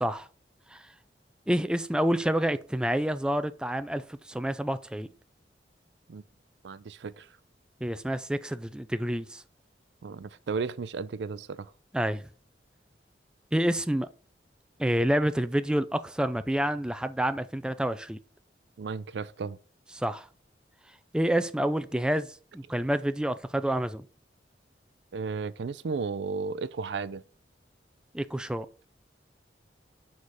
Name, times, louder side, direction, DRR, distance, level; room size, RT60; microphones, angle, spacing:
voice 1, 1.5-5.1 7.8-9.4 11.9-12.2 13.5-14.1 14.8-18.2 20.0-20.3 21.1-22.3 22.5-24.0 28.1-28.7, right 1 dB, 5° right, 0.3 m, -28 dB
voice 2, 6.6-7.3 10.0-11.7 18.8-19.6 25.1-27.2, right 4 dB, 75° right, 0.4 m, -34 dB
6.5 x 4.8 x 5.4 m
head